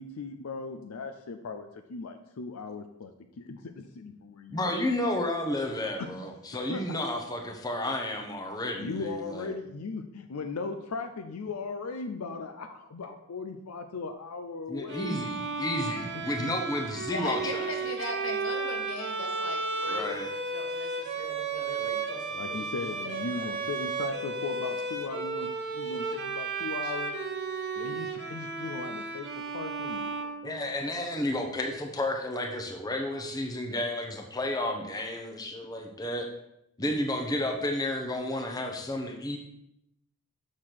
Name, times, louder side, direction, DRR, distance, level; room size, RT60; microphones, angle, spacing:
voice 1, 0.0-4.7 5.1-5.3 6.0-6.2 6.7-6.8 8.8-15.2 16.4-16.6 22.3-27.1 27.8-30.6, left 4 dB, 85° left, 7 dB, 0.5 m, -38 dB
voice 2, 4.5-9.6 14.7-17.7 19.9-20.3 30.4-36.3 36.8-39.4, left 1 dB, 15° left, 2 dB, 0.8 m, -32 dB
voice 3, 5.8-6.3 17.1-23.8 26.8-26.9, left 2 dB, 70° left, 2 dB, 1.4 m, -40 dB
Bowed string instrument, 14.9-31.0, right 4 dB, 50° right, 1.0 m, -34 dB
6.6 x 5.7 x 4.6 m, 0.80 s
head